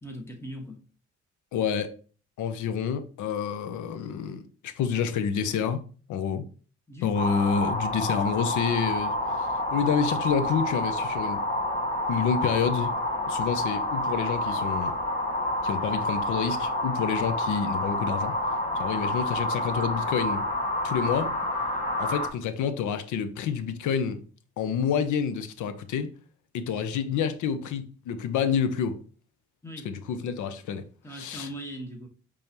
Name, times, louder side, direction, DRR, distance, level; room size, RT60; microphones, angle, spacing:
voice 1, 0.0-0.8 6.9-7.2 29.6-29.9 31.0-32.1, equal, 10° left, 1.3 m, -39 dB
voice 2, 1.5-1.9 2.4-5.8 6.1-6.4 7.0-11.4 12.1-12.9 13.3-14.9 15.6-18.3 18.8-20.5 20.8-21.3 22.0-24.2 24.6-26.1 26.5-29.0 29.8-30.8 31.1-31.5, left 7 dB, 80° left, 0.7 m, -28 dB
sound 1, 7.1-22.3, left 1 dB, 25° left, 1.2 m, -28 dB
5.2 x 3.5 x 2.9 m
cardioid pair, 90°, 30 cm